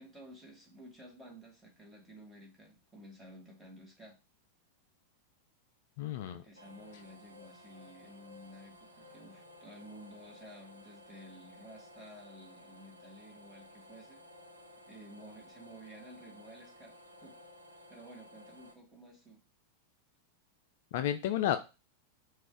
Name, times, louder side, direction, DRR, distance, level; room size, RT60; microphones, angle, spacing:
voice 1, 0.0-4.2 6.4-14.2 14.8-17.4 17.9-19.4, right 1 dB, 10° right, 0 dB, 1.3 m, -53 dB
voice 2, 6.0-6.4 20.9-21.6, left 11 dB, 50° left, 9 dB, 0.3 m, -31 dB
sound 1, 6.6-18.7, left 1 dB, 85° right, 0.8 m, -55 dB
4.0 x 2.4 x 4.5 m, 0.29 s
figure-of-eight pair, 90°, 0 cm